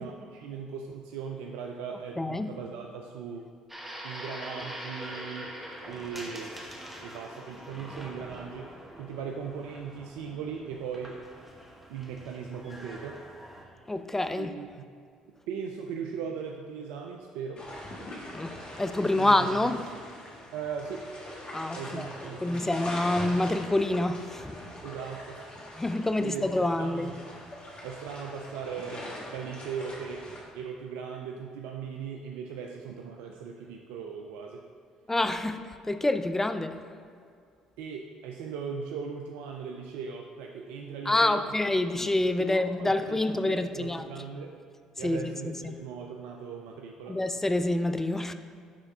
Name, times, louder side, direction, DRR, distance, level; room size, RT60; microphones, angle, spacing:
voice 1, 0.0-3.4 4.0-5.5 5.8-6.5 7.0-11.2 11.9-13.2 14.4-14.9 15.5-17.7 19.2-19.6 20.5-21.1 21.7-22.8 24.8-25.5 26.2-26.4 26.8-27.1 27.8-34.6 37.8-41.5 42.4-43.2 43.4-44.5 45.0-47.2, right 6 dB, 70° right, 0.4 m, -38 dB
voice 2, 2.2-2.5 13.9-14.5 18.3-19.9 21.5-22.1 22.4-24.6 25.8-27.1 35.1-36.8 41.1-44.1 45.0-45.8 47.1-48.3, left 2 dB, 15° left, 0.4 m, -27 dB
sound 1, 3.7-13.6, equal, 5° right, 1.2 m, -44 dB
sound 2, 17.6-30.4, left 1 dB, 40° left, 1.5 m, -42 dB
9.5 x 3.4 x 3.5 m
hypercardioid pair, 55°, 3 cm